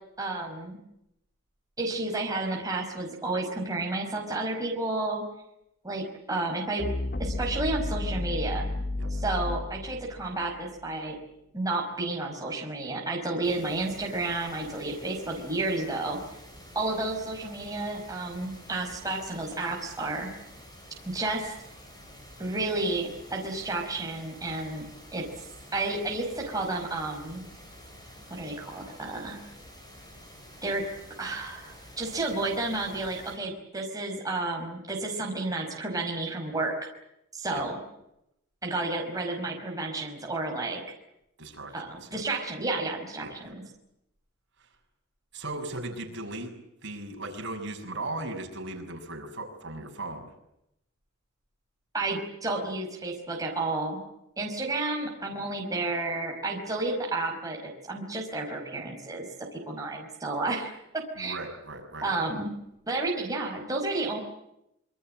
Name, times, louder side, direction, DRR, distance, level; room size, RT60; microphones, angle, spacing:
voice 1, 0.2-0.8 1.8-5.2 5.8-6.9 7.2-8.7 9.1-11.2 11.5-16.2 16.7-20.3 21.0-21.5 22.4-24.9 25.1-25.2 25.7-27.4 28.3-29.4 30.6-30.8 31.2-36.9 37.3-37.8 38.6-40.8 41.7-43.6 51.9-54.0 54.4-61.4 62.0-62.5 62.9-64.2, right 2 dB, 15° right, 0 dB, 5.1 m, -31 dB
sound 1, 6.8-10.9, left 2 dB, 45° left, 1.0 m, -32 dB
sound 2, 13.4-33.4, equal, 20° left, 7.7 m, -49 dB
voice 2, 41.4-42.2 43.2-43.5 45.3-46.5 46.8-50.3 61.1-62.3, right 2 dB, 55° right, 3 dB, 6.5 m, -37 dB
27.0 x 24.0 x 7.7 m, 0.83 s
head